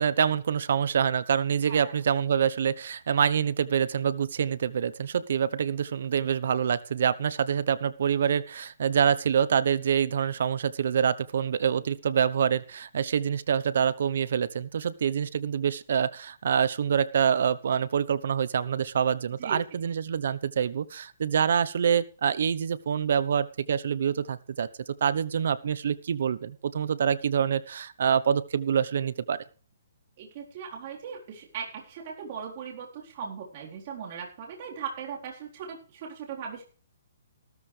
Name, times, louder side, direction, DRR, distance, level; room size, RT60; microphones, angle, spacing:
voice 1, 0.0-24.7 25.0-29.4, right 8 dB, 55° right, 17 dB, 1.0 m, -26 dB
voice 2, 19.4-19.8 30.2-36.6, right 6 dB, 35° right, -1 dB, 4.1 m, -39 dB
15.5 x 13.0 x 3.4 m, 0.39 s
hypercardioid pair, 170°, 0 cm